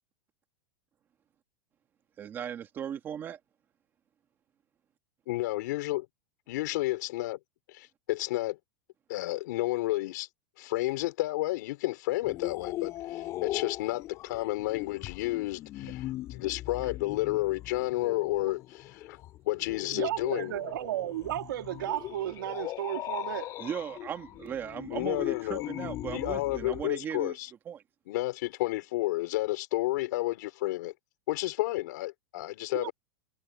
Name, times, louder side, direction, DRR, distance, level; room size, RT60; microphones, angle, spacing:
voice 1, 2.2-3.4 23.6-27.4 27.7-27.8, right 9 dB, 20° right, 1.9 m, -37 dB
voice 2, 5.3-6.1 6.5-7.4 7.7-8.6 9.1-10.3 10.6-19.2 19.5-20.7 24.9-25.6 26.1-27.5 28.1-30.9 31.3-32.9, left 18 dB, 60° left, 4.4 m, -31 dB
sound 1, 12.2-26.8, left 15 dB, 25° left, 6.3 m, -40 dB
voice 3, 19.9-23.5 32.7-32.9, right 14 dB, 80° right, 2.7 m, -34 dB
supercardioid pair, 175°, 11 cm